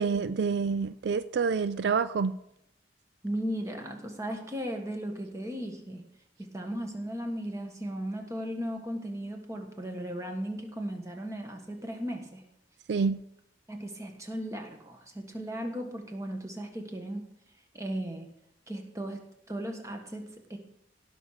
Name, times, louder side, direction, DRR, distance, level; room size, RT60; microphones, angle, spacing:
voice 1, 0.0-2.4 12.9-13.2, right 5 dB, 70° right, 13 dB, 0.4 m, -27 dB
voice 2, 3.2-6.0 6.4-12.4 13.7-17.3 17.7-18.3 18.7-19.2 19.5-20.6, equal, 15° right, 3 dB, 1.5 m, -36 dB
17.5 x 6.2 x 4.9 m, 0.77 s
head